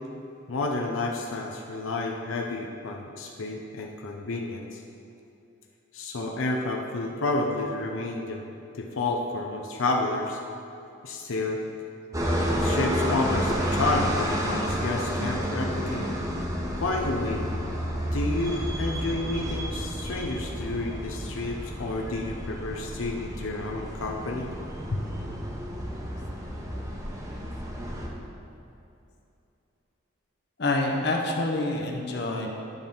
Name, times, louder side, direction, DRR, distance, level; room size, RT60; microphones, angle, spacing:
voice 1, 0.5-4.8 5.9-10.4 11.0-11.6 12.6-16.1 16.8-17.5 18.1-24.5 24.9-25.0, left 2 dB, 85° left, 1 dB, 0.6 m, -30 dB
sound 1, 12.1-28.1, equal, 15° right, 0.8 m, -30 dB
voice 2, 30.6-32.5, left 2 dB, 55° left, 1 dB, 0.8 m, -27 dB
10.0 x 3.5 x 5.4 m, 2.7 s
head